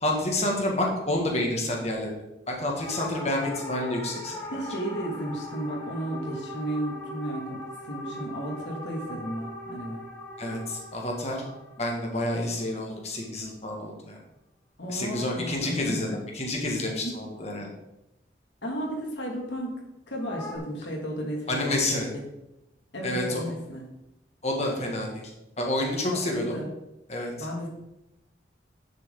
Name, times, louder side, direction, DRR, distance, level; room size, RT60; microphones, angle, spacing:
voice 1, 0.0-2.1 2.5-4.4 10.4-11.4 11.8-14.2 14.9-16.1 16.3-17.7 21.5-22.1 23.0-23.5 24.4-25.2 25.6-26.6 27.1-27.3, left 1 dB, 35° left, 0 dB, 2.1 m, -29 dB
sound 1, 2.7-13.2 20.2-20.6, left 1 dB, 15° left, 1.6 m, -40 dB
voice 2, 4.5-10.0 14.8-16.2 17.0-17.1 18.6-19.8 20.1-22.1 22.9-23.8 26.1-26.7 27.4-27.7, right 1 dB, 75° left, 0 dB, 2.4 m, -33 dB
10.5 x 6.7 x 3.9 m, 0.90 s
head